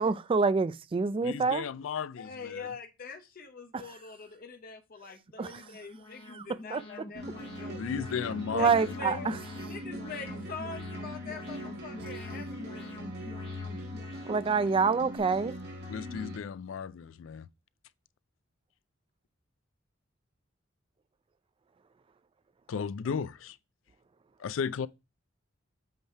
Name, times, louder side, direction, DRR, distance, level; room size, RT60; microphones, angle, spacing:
voice 1, 0.0-1.7 3.7-3.8 5.4-5.6 6.3-6.8 8.5-9.4 14.3-15.6, right 5 dB, 25° right, 0.3 m, -27 dB
voice 2, 1.2-2.7 7.7-8.8 9.1-9.3 15.9-17.5 22.7-23.6 24.4-24.9, left 6 dB, 75° left, 0.4 m, -35 dB
voice 3, 2.2-7.8 8.5-9.4 9.6-13.0, left 4 dB, 50° left, 0.7 m, -44 dB
Alarm, 5.3-15.2, left 2 dB, 30° left, 1.3 m, -46 dB
sound 1, 7.1-16.4, equal, 55° right, 1.9 m, -41 dB
8.0 x 3.3 x 4.5 m
head